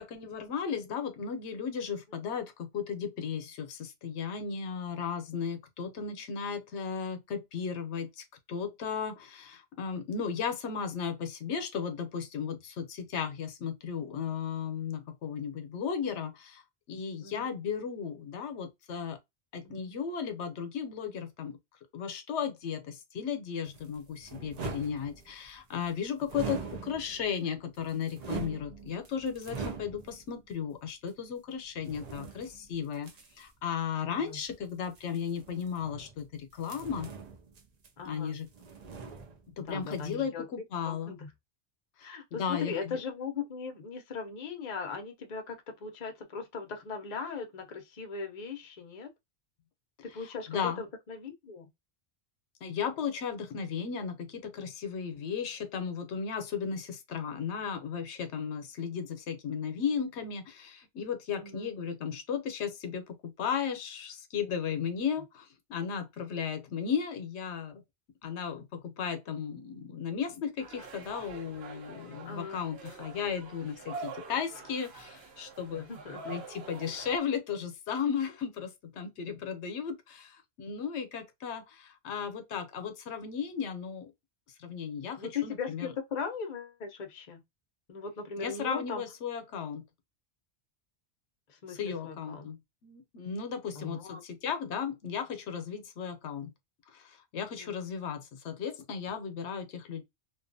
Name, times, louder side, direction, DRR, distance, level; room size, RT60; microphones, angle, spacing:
voice 1, 0.0-16.6 16.9-19.2 19.5-21.6 21.9-33.1 33.4-37.1 38.0-38.5 39.6-41.2 42.0-43.0 50.5-50.8 52.6-67.8 68.2-75.9 76.2-84.1 84.6-85.9 88.4-89.8 91.7-92.6 92.8-96.5 96.9-100.0, left 7 dB, 80° left, 0.9 m, -35 dB
voice 2, 17.2-17.5 19.6-19.9 34.1-34.4 38.0-38.4 39.6-40.4 40.9-41.3 42.0-49.1 50.0-51.7 61.4-61.7 72.2-72.6 75.7-76.2 85.2-87.4 87.9-89.0 91.5-92.5 93.7-94.2 97.6-97.7, left 5 dB, 45° left, 0.7 m, -39 dB
sound 1, 23.6-25.6 26.2-27.3 27.7-30.3 30.9-31.0 31.8-33.5 34.8-36.3 36.6-38.2 38.5-39.6 39.9-40.1, right 5 dB, 50° right, 0.5 m, -42 dB
sound 2, 70.6-77.2, right 4 dB, 65° right, 1.0 m, -45 dB
2.5 x 2.3 x 2.5 m
omnidirectional pair, 1.2 m